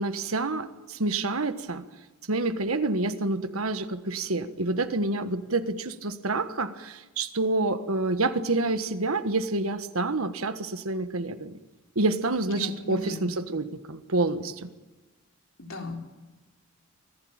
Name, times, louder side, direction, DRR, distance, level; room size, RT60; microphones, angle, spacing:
voice 1, 0.0-1.8 2.3-11.6 11.9-14.7, right 2 dB, 80° right, 10 dB, 1.5 m, -28 dB
voice 2, 12.5-13.3 15.6-16.1, left 2 dB, 70° left, 2 dB, 3.9 m, -37 dB
24.5 x 15.5 x 8.9 m, 1.2 s
head